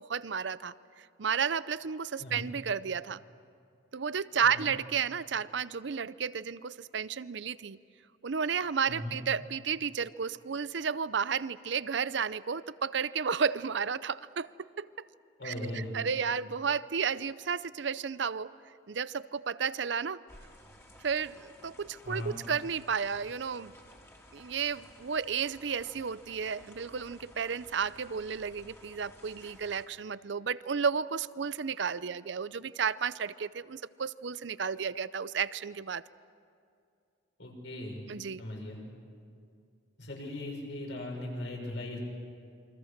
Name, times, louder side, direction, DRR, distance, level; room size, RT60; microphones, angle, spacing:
voice 1, 0.0-3.2 3.9-7.8 8.2-15.1 15.4-18.5 18.9-20.2 21.0-23.7 24.3-36.0 38.1-38.4, right 6 dB, 65° right, 17 dB, 0.6 m, -32 dB
voice 2, 8.9-9.2 15.4-15.9 22.0-22.4 37.4-38.0 38.4-38.8 40.0-42.0, left 1 dB, 70° left, 0 dB, 6.4 m, -38 dB
sound 1, 20.3-29.9, left 1 dB, 15° left, 2.5 m, -56 dB
28.5 x 25.0 x 6.7 m, 2.4 s
head